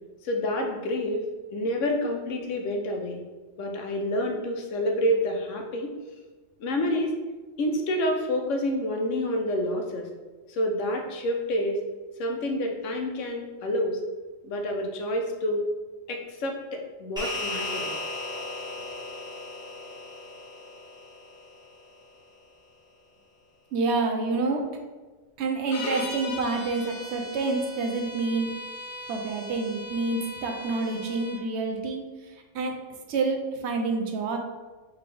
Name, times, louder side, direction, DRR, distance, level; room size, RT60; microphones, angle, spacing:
voice 1, 0.2-1.2 1.5-3.2 3.6-5.9 6.6-7.1 7.6-10.1 10.5-11.8 12.2-14.0 14.4-15.6 16.1-17.9, left 1 dB, 80° left, 3 dB, 1.0 m, -28 dB
sound 1, 17.2-21.8, left 2 dB, 5° right, 1.0 m, -36 dB
voice 2, 23.7-24.6 25.4-28.5 29.1-32.0 32.5-32.7 33.1-34.4, right 3 dB, 70° right, 4 dB, 0.8 m, -28 dB
sound 2, 25.7-31.4, left 1 dB, 55° left, 0.7 m, -39 dB
3.8 x 3.3 x 3.2 m, 1.3 s
omnidirectional pair, 1.3 m